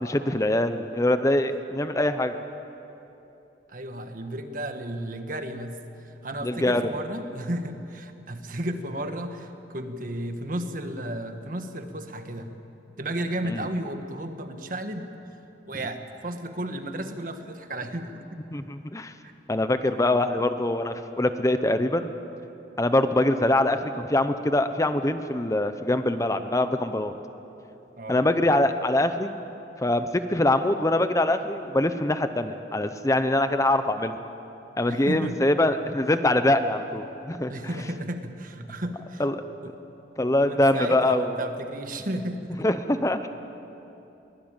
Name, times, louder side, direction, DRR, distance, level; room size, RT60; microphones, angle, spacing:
voice 1, 0.0-2.3 6.4-6.9 13.5-13.6 18.5-19.1 19.5-22.1 22.8-27.2 28.1-29.3 29.8-34.2 34.8-37.5 39.2-39.3 40.2-41.3 42.6-43.3, left 1 dB, 20° left, 9 dB, 0.7 m, -23 dB
voice 2, 3.7-12.6 13.0-15.1 15.7-18.4 19.9-20.0 28.0-28.3 34.9-35.4 37.5-39.2 39.6-39.7 40.3-42.7, right 1 dB, 50° right, 7 dB, 1.6 m, -33 dB
23.0 x 18.5 x 9.0 m, 2.9 s
head